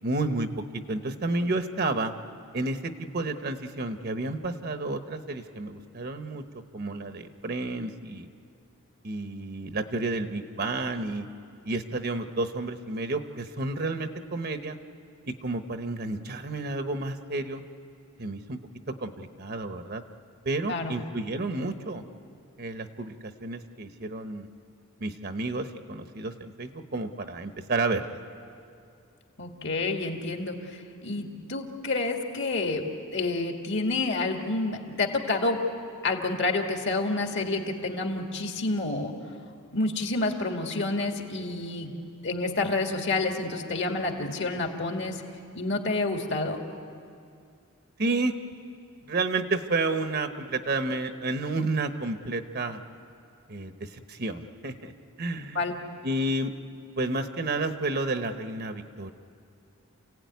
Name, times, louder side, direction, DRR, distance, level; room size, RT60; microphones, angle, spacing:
voice 1, 0.0-2.1 2.5-6.4 6.7-8.3 9.0-11.3 11.6-14.8 15.3-17.6 18.2-18.6 19.0-20.0 20.4-22.0 22.6-24.5 25.0-28.2 48.0-48.4 49.0-52.8 53.5-54.9 55.2-55.6 56.0-56.5 57.0-59.1, right 2 dB, 45° right, 8 dB, 1.0 m, -31 dB
voice 2, 29.4-35.6 36.0-39.1 39.7-41.9 42.2-45.2 45.5-46.6 55.5-55.7, left 2 dB, 55° left, 3 dB, 2.2 m, -29 dB
28.0 x 16.5 x 9.4 m, 2.4 s
head